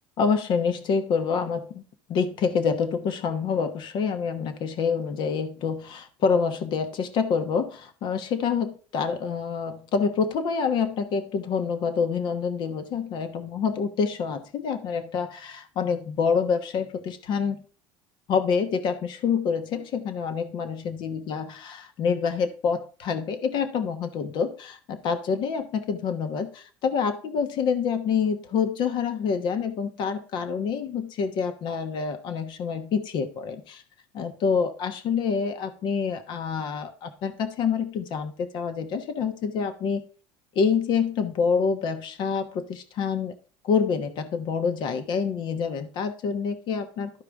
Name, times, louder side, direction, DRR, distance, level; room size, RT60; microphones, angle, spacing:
voice 1, 0.2-1.8 2.1-17.6 18.3-33.8 34.1-40.0 40.5-43.3 43.6-47.2, left 6 dB, 55° left, 8 dB, 1.2 m, -27 dB
12.5 x 4.9 x 3.6 m, 0.40 s
supercardioid pair, 115°, 9 cm